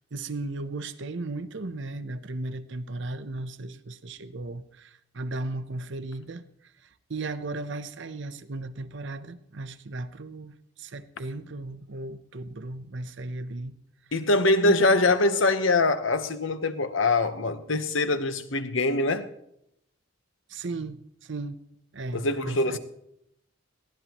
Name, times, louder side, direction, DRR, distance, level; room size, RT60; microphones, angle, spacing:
voice 1, 0.0-6.4 7.1-13.8 14.6-14.8 20.5-21.6 21.9-22.8, right 2 dB, 65° right, 0.8 m, -36 dB
voice 2, 14.1-19.3 22.1-22.8, left 2 dB, 80° left, 1.1 m, -23 dB
22.0 x 16.0 x 3.0 m
head